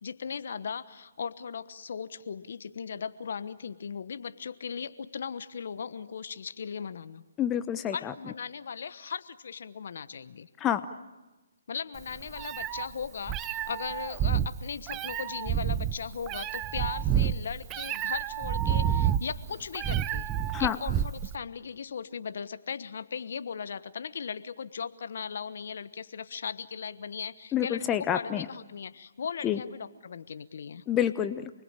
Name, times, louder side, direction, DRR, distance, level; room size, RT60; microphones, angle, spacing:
voice 1, 0.0-7.2 7.9-10.5 11.7-20.3 20.6-30.8, left 6 dB, 60° left, 13 dB, 1.2 m, -38 dB
voice 2, 7.4-8.1 10.6-10.9 20.5-20.8 27.5-28.5 29.4-29.6 30.9-31.5, left 10 dB, 15° left, 11 dB, 0.9 m, -28 dB
Meow, 12.0-21.3, right 10 dB, 20° right, 0.8 m, -29 dB
29.0 x 20.5 x 9.0 m, 1.1 s
figure-of-eight pair, 140°, 0 cm